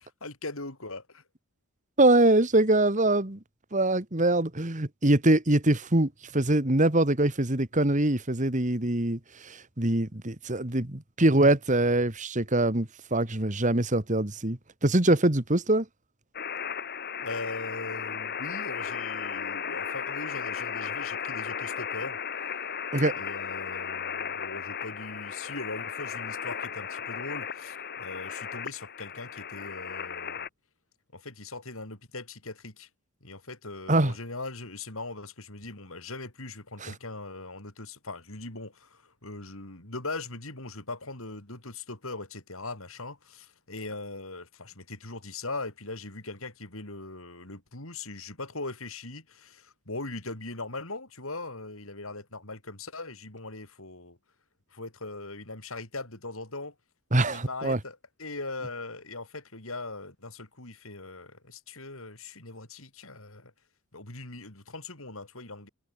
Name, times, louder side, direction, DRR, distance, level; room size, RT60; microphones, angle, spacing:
voice 1, 0.2-1.2 17.2-22.2 23.1-30.5 31.1-32.9 33.2-54.2 54.7-56.7 57.2-63.5 63.9-65.7, left 2 dB, 70° left, 5.7 m, -40 dB
voice 2, 2.0-3.4 3.7-15.9 22.9-23.1 33.9-34.1 36.8-36.9 57.1-57.8, right 1 dB, 35° right, 1.9 m, -24 dB
sound 1, 16.3-30.5, left 7 dB, 45° left, 2.2 m, -35 dB
head